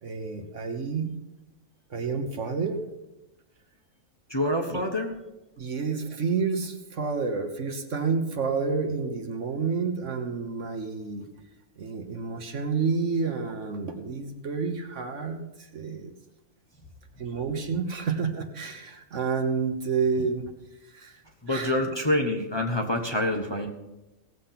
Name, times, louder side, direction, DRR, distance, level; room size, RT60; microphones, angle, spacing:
voice 1, 0.0-1.1 1.9-2.8 4.7-4.8 5.6-11.3 11.8-15.4 15.7-16.1 17.2-20.5 20.9-21.1 21.5-21.8, right 5 dB, 55° right, 5 dB, 1.4 m, -29 dB
voice 2, 4.3-5.2 21.4-23.7, left 1 dB, 20° left, 0 dB, 1.2 m, -26 dB
17.5 x 7.5 x 5.8 m, 0.98 s
omnidirectional pair, 1.5 m